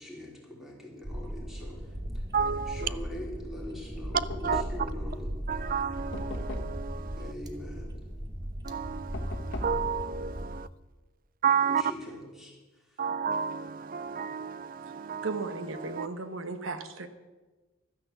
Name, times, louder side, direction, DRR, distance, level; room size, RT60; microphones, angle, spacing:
voice 1, 0.0-1.8 2.7-5.3 7.2-7.9 11.7-12.5, left 1 dB, ahead, -3 dB, 3.4 m, -42 dB
sound 1, 1.0-10.6, equal, 20° right, 1.0 m, -38 dB
voice 2, 2.3-2.9 4.4-4.6 5.5-7.3 8.6-10.7 11.4-11.8 13.0-15.4 15.8-16.1, right 7 dB, 45° right, 18 dB, 0.4 m, -31 dB
Knock, 4.1-5.0 6.1-6.9 9.1-9.9, left 2 dB, 60° left, 1.4 m, -38 dB
voice 3, 15.2-17.1, right 3 dB, 75° right, 9 dB, 1.2 m, -35 dB
13.0 x 9.9 x 7.1 m, 1.2 s
head